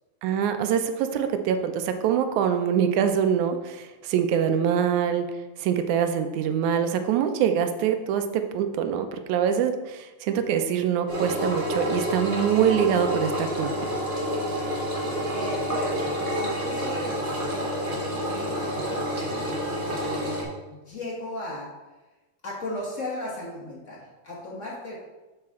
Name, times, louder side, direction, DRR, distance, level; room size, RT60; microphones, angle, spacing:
voice 1, 0.2-5.3 5.6-13.9, right 8 dB, 80° right, 8 dB, 2.1 m, -24 dB
Engine, 11.1-20.4, equal, 30° right, 1.0 m, -28 dB
voice 2, 15.3-20.4 20.7-21.7 22.4-25.0, left 1 dB, 55° left, -3 dB, 0.8 m, -37 dB
7.5 x 7.2 x 3.6 m, 1.1 s
omnidirectional pair, 3.4 m